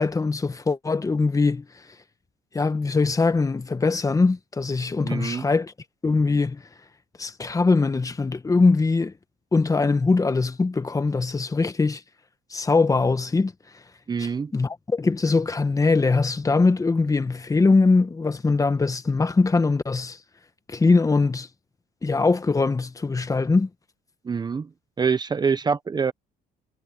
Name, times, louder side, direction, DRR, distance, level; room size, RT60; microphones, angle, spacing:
voice 1, 0.0-1.6 2.5-5.7 6.0-6.6 7.2-9.1 9.5-12.0 12.5-13.5 14.2-20.2 20.7-21.5 22.0-23.7, left 3 dB, 20° left, 1.4 m, -22 dB
voice 2, 5.0-5.4 14.1-14.5 24.2-24.7 25.0-26.1, right 5 dB, 25° right, 0.8 m, -25 dB
cardioid pair, 110°, 17 cm